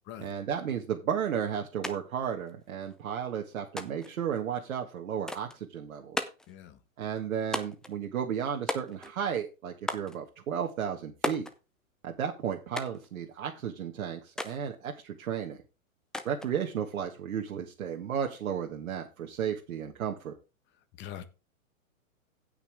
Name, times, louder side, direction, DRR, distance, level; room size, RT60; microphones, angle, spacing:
voice 1, 0.2-6.3 7.0-11.5 12.0-15.6 16.3-20.3, right 8 dB, 70° right, 1.9 m, -33 dB
sound 1, 1.8-2.0 2.2-3.0 3.8-4.2 5.3-5.6 6.2-6.5 7.5-7.9 8.7-9.2 9.9-10.2 11.2-11.6 12.8-13.1 14.4-14.6 16.1-16.5, left 1 dB, ahead, 0.5 m, -35 dB
voice 2, 6.5-6.8 21.0-21.3, left 10 dB, 25° left, 1.3 m, -43 dB
16.0 x 5.9 x 3.5 m
hypercardioid pair, 125°, 42 cm